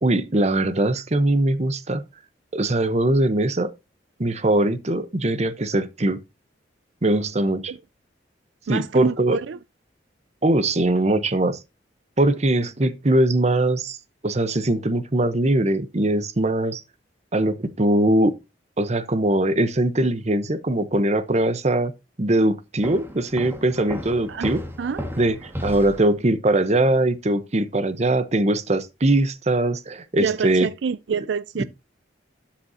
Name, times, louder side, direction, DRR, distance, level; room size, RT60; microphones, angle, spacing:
voice 1, 0.0-2.1 2.5-3.7 4.2-6.2 7.0-7.7 8.7-9.4 10.4-11.6 12.2-14.0 14.2-16.8 17.3-18.3 18.8-21.9 22.2-24.6 25.2-25.3 25.6-30.7 31.6-31.7, right 1 dB, 35° right, 0.9 m, -21 dB
voice 2, 8.7-9.6 24.3-24.5 24.8-25.1 30.1-31.6, right 6 dB, 75° right, 0.4 m, -27 dB
Walk footsteps, 22.8-26.1, equal, 15° right, 1.7 m, -34 dB
12.5 x 7.2 x 2.8 m
head